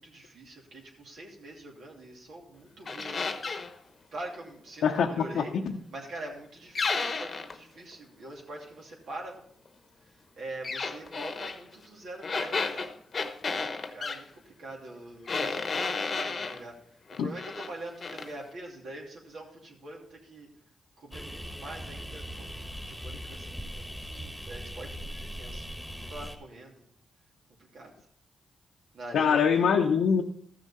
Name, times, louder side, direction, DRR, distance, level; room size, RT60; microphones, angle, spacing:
voice 1, 0.0-3.4 4.1-5.5 5.9-9.4 10.4-12.9 13.5-14.2 14.6-16.7 17.2-20.5 21.0-22.5 22.8-25.6 26.0-26.7 27.7-27.9 28.9-29.6, right 1 dB, 75° right, -1 dB, 2.8 m, -44 dB
sound 1, 2.9-3.7 6.8-7.6 10.6-11.6 12.2-14.2 15.3-16.6 17.1-17.7 18.0-18.3, left 4 dB, 50° left, 0.9 m, -32 dB
voice 2, 4.8-5.7 17.2-17.3 29.1-30.2, left 6 dB, 85° left, 0 dB, 0.7 m, -24 dB
sound 2, 21.1-26.4, equal, 5° right, 1.6 m, -40 dB
14.0 x 6.5 x 4.3 m, 0.67 s
cardioid pair, 65°, 0 cm